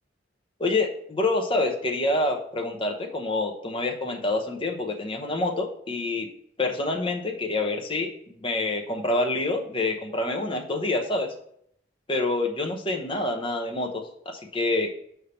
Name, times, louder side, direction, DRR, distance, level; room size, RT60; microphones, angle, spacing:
voice 1, 0.6-6.3 6.6-11.3 12.1-14.9, left 2 dB, 30° left, 2 dB, 0.9 m, -27 dB
5.5 x 3.4 x 5.6 m, 0.69 s
head